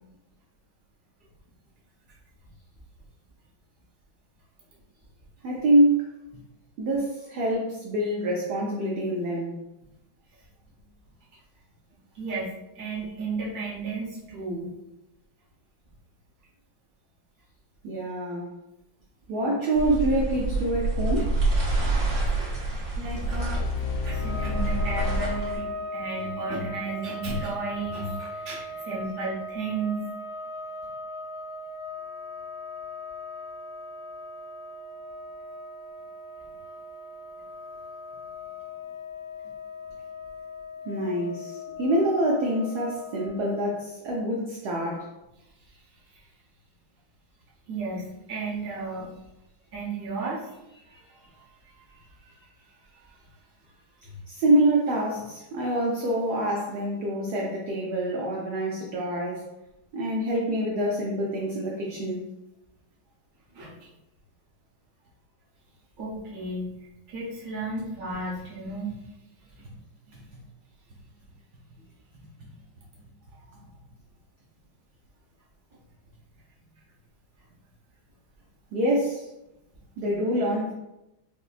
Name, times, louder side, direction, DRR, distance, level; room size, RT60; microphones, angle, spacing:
voice 1, 5.4-6.1 6.8-9.6 17.8-18.5 19.3-21.3 40.9-45.1 54.3-59.4 59.9-62.3 69.6-69.7 78.7-79.3 80.0-80.7, right 1 dB, 75° right, -2 dB, 0.9 m, -26 dB
voice 2, 12.1-14.7 22.3-23.6 24.0-30.0 45.7-45.8 46.1-46.2 47.7-49.1 49.7-52.5 52.9-53.1 63.5-63.9 66.0-68.9 69.6-69.7, right 3 dB, 35° right, -6 dB, 0.8 m, -34 dB
sound 1, 19.7-25.6, right 2 dB, 55° right, 1.4 m, -27 dB
sound 2, 23.1-26.1, left 7 dB, 70° left, 1.1 m, -33 dB
sound 3, 24.1-43.7, left 2 dB, 50° left, 1.1 m, -39 dB
5.2 x 2.0 x 2.4 m, 0.92 s
omnidirectional pair, 2.2 m